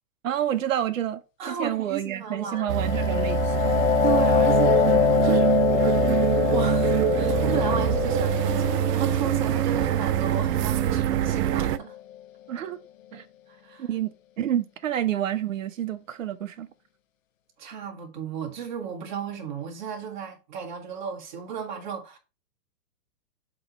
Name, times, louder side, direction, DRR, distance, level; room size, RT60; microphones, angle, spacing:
voice 1, 0.2-3.7 12.5-12.8 13.1-13.2 13.8-16.7, right 11 dB, 55° right, 0.8 m, -29 dB
voice 2, 1.4-2.7 3.5-3.7 4.0-5.5 6.4-11.9 13.1-13.9 17.6-22.2, right 8 dB, 30° right, 1.5 m, -34 dB
sound 1, 2.5-12.0, left 11 dB, 55° left, 0.7 m, -25 dB
sound 2, 2.7-11.8, right 12 dB, 85° right, 0.6 m, -24 dB
7.7 x 3.1 x 5.3 m
hypercardioid pair, 180°, 47 cm